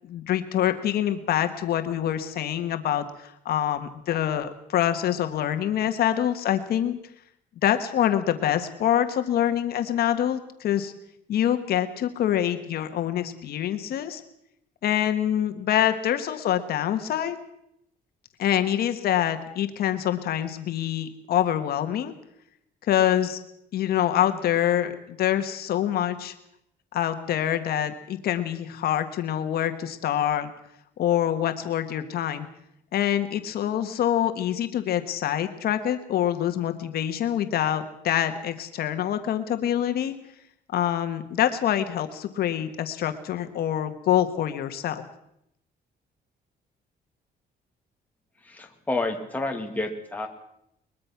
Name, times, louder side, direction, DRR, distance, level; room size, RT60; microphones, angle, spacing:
voice 1, 0.0-7.0 7.6-10.9 11.3-14.2 14.8-17.4 18.4-22.1 22.9-23.4 23.7-26.3 26.9-30.5 31.0-32.5 32.9-40.1 40.7-45.0, left 10 dB, 65° left, 8 dB, 1.6 m, -25 dB
voice 2, 48.4-50.3, left 2 dB, 10° left, 2 dB, 2.4 m, -29 dB
22.5 x 21.5 x 6.0 m, 0.76 s
cardioid pair, 165°, 17 cm